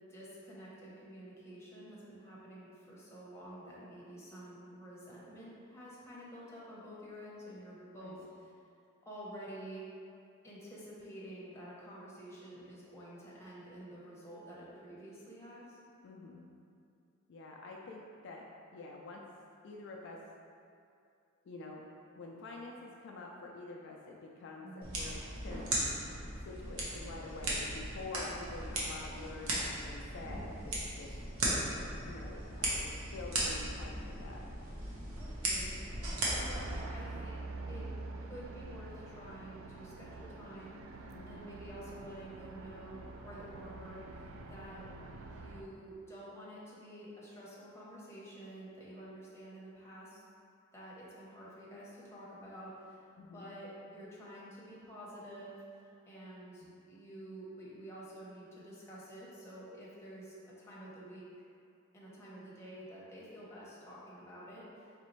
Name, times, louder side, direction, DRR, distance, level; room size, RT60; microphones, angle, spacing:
voice 1, 0.1-8.5 9.0-9.8 10.4-15.8 24.6-25.0 35.2-35.8 36.3-37.9 38.2-44.8 45.2-50.2 50.7-53.1 53.3-61.2 61.9-64.9, equal, 15° left, -7 dB, 0.8 m, -49 dB
voice 2, 16.0-16.5 17.3-18.5 18.7-19.2 19.6-20.2 21.5-21.9 22.1-25.6 26.4-31.1 32.0-34.4 41.1-41.5 44.9-45.0 53.2-53.5 56.6-56.7, left 3 dB, 60° left, -1 dB, 0.3 m, -47 dB
sound 1, 24.8-36.8, right 1 dB, 85° right, 0.9 m, -37 dB
sound 2, 36.5-45.6, right 3 dB, 70° right, 0.3 m, -46 dB
4.0 x 3.3 x 3.1 m, 2.5 s
head